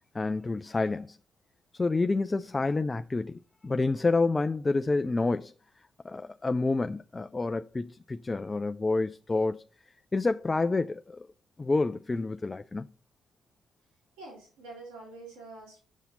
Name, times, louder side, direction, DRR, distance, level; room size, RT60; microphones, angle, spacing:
voice 1, 0.1-1.2 1.7-5.5 6.0-9.6 10.1-11.2 11.6-12.9, left 3 dB, 30° left, 0.4 m, -28 dB
voice 2, 14.2-15.8, right 2 dB, 80° right, 3.4 m, -46 dB
7.1 x 5.7 x 4.0 m
hypercardioid pair, 50°, 0 cm